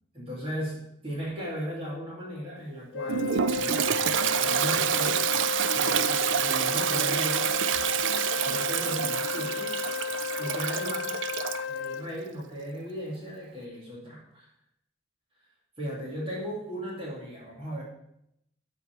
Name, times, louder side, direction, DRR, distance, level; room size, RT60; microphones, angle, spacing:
voice 1, 0.1-0.8 1.0-3.8 4.4-5.2 5.7-7.5 8.4-9.7 10.4-11.1 11.7-14.5 15.8-17.8, equal, 30° right, -5 dB, 2.5 m, -36 dB
Wind instrument woodwind instrument, 2.9-12.1, left 7 dB, 75° left, 0.3 m, -33 dB
Toilet flush, 3.1-11.7, right 9 dB, 80° right, 0.4 m, -28 dB
12.5 x 4.7 x 4.5 m, 0.78 s
head